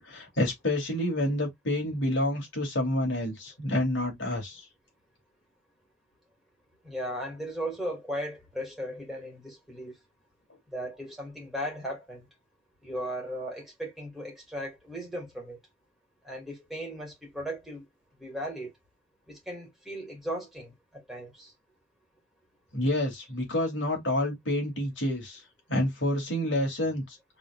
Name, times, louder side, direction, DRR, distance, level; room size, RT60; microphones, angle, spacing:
voice 1, 0.1-4.7 22.7-25.4 25.7-27.2, left 1 dB, 65° left, 2.6 m, -28 dB
voice 2, 6.8-9.9 10.7-12.3 12.8-15.6 16.2-17.8 18.2-18.7 19.3-21.5, equal, ahead, 2.1 m, -37 dB
4.9 x 3.7 x 2.3 m
head